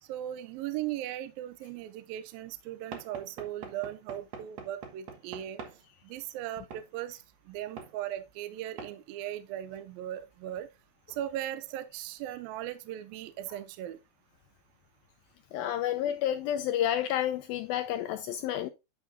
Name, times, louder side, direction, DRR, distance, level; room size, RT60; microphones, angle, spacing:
voice 1, 0.1-5.6 6.0-10.7 11.1-14.0, right 12 dB, 80° right, 2.2 m, -38 dB
Knock / Wood, 2.9-5.8 6.7-6.9 7.8-7.9 8.8-9.0, right 5 dB, 60° right, 1.9 m, -44 dB
voice 2, 15.5-18.7, left 11 dB, 85° left, 2.1 m, -30 dB
10.5 x 6.2 x 2.6 m
omnidirectional pair, 4.8 m